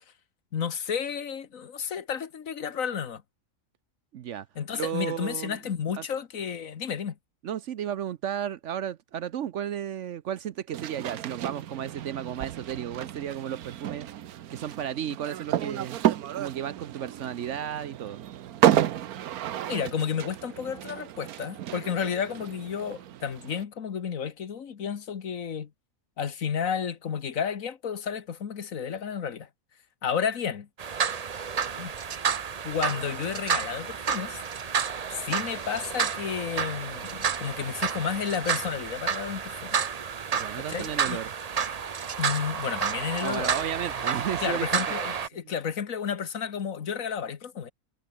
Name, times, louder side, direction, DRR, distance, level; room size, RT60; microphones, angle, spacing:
voice 1, 0.5-3.2 4.5-7.2 19.7-25.7 26.2-29.5 30.0-30.7 31.8-31.9 32.6-34.4 35.1-39.8 40.6-41.2 42.2-43.5 44.4-47.7, left 7 dB, 65° left, 1.7 m, -32 dB
voice 2, 4.1-4.5 4.7-5.6 6.0-6.1 7.4-14.1 14.5-16.0 16.4-18.2 40.3-41.3 43.2-44.9, right 9 dB, 65° right, 0.9 m, -34 dB
sound 1, 10.7-23.6, right 11 dB, 90° right, 1.3 m, -31 dB
sound 2, 30.8-45.3, right 6 dB, 40° right, 0.6 m, -30 dB
omnidirectional pair, 1.5 m